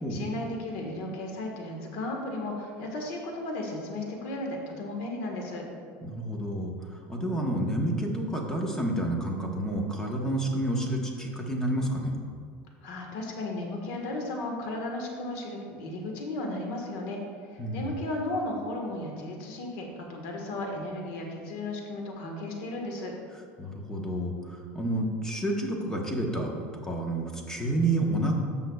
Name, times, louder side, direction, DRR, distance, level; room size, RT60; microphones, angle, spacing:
voice 1, 0.1-5.6 12.8-17.2 17.5-23.1, left 2 dB, 70° left, 1 dB, 1.5 m, -35 dB
voice 2, 6.0-6.7 7.1-12.1 17.6-17.8 23.6-26.5 26.8-28.3, right 1 dB, 10° left, 0 dB, 1.1 m, -29 dB
14.5 x 5.6 x 2.4 m, 2.1 s
supercardioid pair, 135°, 5 cm